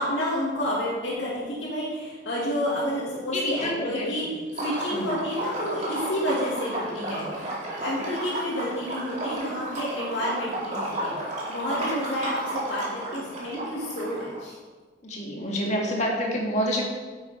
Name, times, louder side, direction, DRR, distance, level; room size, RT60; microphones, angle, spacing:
voice 1, 0.0-4.3 4.5-11.1 11.5-14.6, equal, 80° left, -7 dB, 2.5 m, -30 dB
voice 2, 3.3-4.3 4.9-5.1 11.9-12.0 15.0-16.8, equal, 40° left, -1 dB, 1.9 m, -28 dB
Liquid, 4.5-14.4, right 1 dB, 40° right, 2.5 m, -33 dB
9.5 x 8.1 x 4.5 m, 1.4 s
head